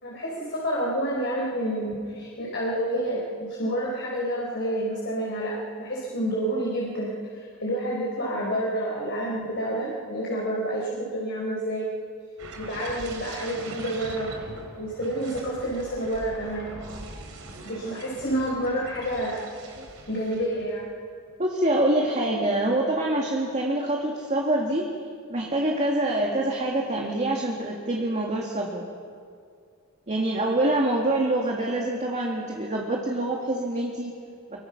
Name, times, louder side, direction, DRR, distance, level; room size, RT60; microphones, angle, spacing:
voice 1, 0.0-5.5 5.8-7.1 7.6-11.9 12.6-14.3 14.8-16.7 17.6-19.4 20.1-20.8, right 1 dB, 55° left, -4 dB, 4.2 m, -29 dB
sound 1, 12.4-20.9 21.2-21.5, right 2 dB, 70° right, 3.5 m, -41 dB
voice 2, 21.4-24.9 25.3-28.9 30.1-34.1, right 1 dB, 35° right, -1 dB, 2.1 m, -25 dB
25.0 x 22.5 x 5.9 m, 2.2 s
head